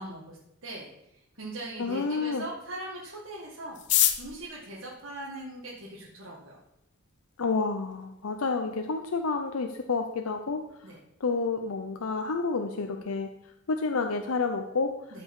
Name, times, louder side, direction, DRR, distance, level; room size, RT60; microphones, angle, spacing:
voice 1, 0.0-6.6 10.8-11.0 15.1-15.2, right 1 dB, 65° right, -5 dB, 1.7 m, -41 dB
voice 2, 1.8-2.4 7.4-10.9 11.2-13.3 13.7-14.9, left 4 dB, 90° left, 5 dB, 0.7 m, -29 dB
sound 1, 3.7-6.0 6.8-6.9 7.1-7.2 7.5-7.9 8.3-8.4 8.5-9.0 9.3-9.5 9.8-10.1, left 11 dB, 55° left, 0.8 m, -28 dB
12.5 x 5.3 x 4.8 m, 0.83 s
head